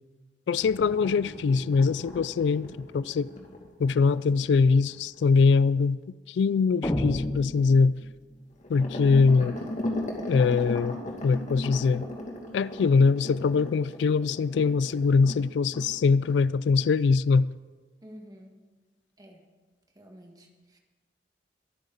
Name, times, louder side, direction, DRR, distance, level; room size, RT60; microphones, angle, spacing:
voice 1, 0.5-3.3 3.8-6.0 6.3-7.9 8.7-9.5 10.3-11.0 11.2-12.1 12.5-17.5, left 4 dB, 70° left, 0.3 m, -22 dB
sound 1, 0.5-5.2 8.6-15.4 15.7-15.9 16.2-16.4 16.8-16.9, left 1 dB, 45° left, 2.3 m, -37 dB
sound 2, 6.8-8.4, left 1 dB, 20° left, 0.7 m, -30 dB
voice 2, 18.0-18.6 19.2-19.4 20.0-20.8, equal, 20° right, 1.7 m, -49 dB
23.5 x 9.1 x 4.0 m
head